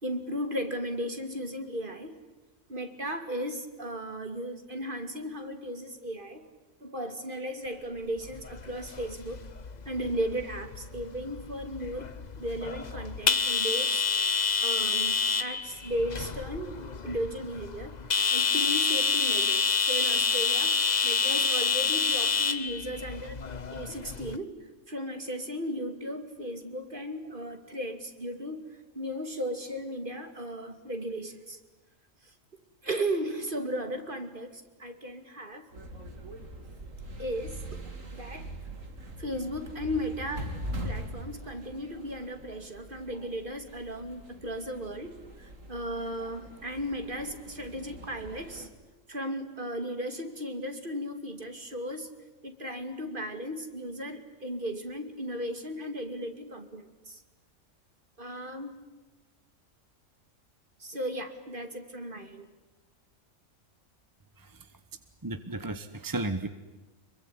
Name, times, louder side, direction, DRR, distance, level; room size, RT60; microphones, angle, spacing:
voice 1, 0.0-2.2 2.7-6.5 6.8-9.5 9.8-14.1 14.6-18.0 18.3-23.4 23.7-31.6 32.2-32.3 32.8-35.7 37.2-37.6 38.1-38.5 39.2-40.5 40.8-48.7 49.1-52.1 52.4-57.2 58.2-58.7 60.8-62.5, equal, 40° right, 7 dB, 2.8 m, -36 dB
sound 1, 8.2-24.4, left 5 dB, 35° left, 1.1 m, -28 dB
sound 2, 35.7-48.7, right 1 dB, 75° right, 3.4 m, -42 dB
voice 2, 65.2-66.5, right 2 dB, 15° right, 10 dB, 1.1 m, -33 dB
26.5 x 23.0 x 9.8 m, 1.1 s
omnidirectional pair, 1.4 m